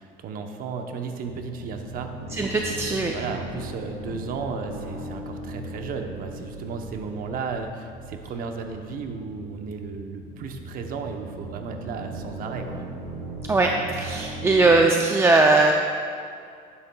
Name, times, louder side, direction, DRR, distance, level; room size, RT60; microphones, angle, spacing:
voice 1, 0.0-2.2 3.1-12.9, right 5 dB, 50° right, 5 dB, 0.8 m, -34 dB
sound 1, 1.2-14.9, right 1 dB, 90° right, 1.9 m, -38 dB
voice 2, 2.3-3.2 13.5-15.7, right 3 dB, 15° right, 1 dB, 0.4 m, -20 dB
11.5 x 9.9 x 2.3 m, 2.3 s
cardioid pair, 140°, 19 cm